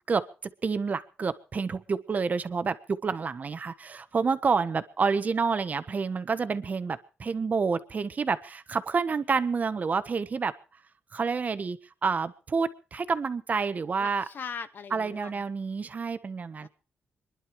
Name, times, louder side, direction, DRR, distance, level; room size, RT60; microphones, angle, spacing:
voice 1, 0.1-10.5 11.1-14.2 14.9-16.7, right 5 dB, 45° right, 12 dB, 1.3 m, -29 dB
voice 2, 14.0-15.4 16.6-16.7, left 6 dB, 60° left, 13 dB, 1.1 m, -40 dB
25.5 x 11.5 x 4.7 m, 0.36 s
cardioid pair, 90°, 4 cm